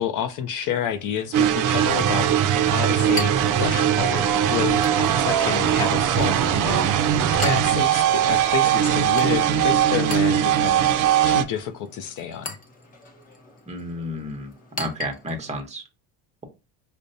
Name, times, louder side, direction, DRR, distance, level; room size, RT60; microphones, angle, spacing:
voice 1, 0.0-10.9 11.3-12.6, left 8 dB, 50° left, 0.5 m, -29 dB
Chink clink, 0.6-15.6, left 2 dB, 20° left, 0.8 m, -41 dB
sound 1, 1.3-11.4, right 9 dB, 50° right, 0.5 m, -20 dB
voice 2, 13.7-14.5 14.8-15.8, equal, 15° right, 0.9 m, -31 dB
4.9 x 2.2 x 2.6 m
cardioid pair, 120°, 42 cm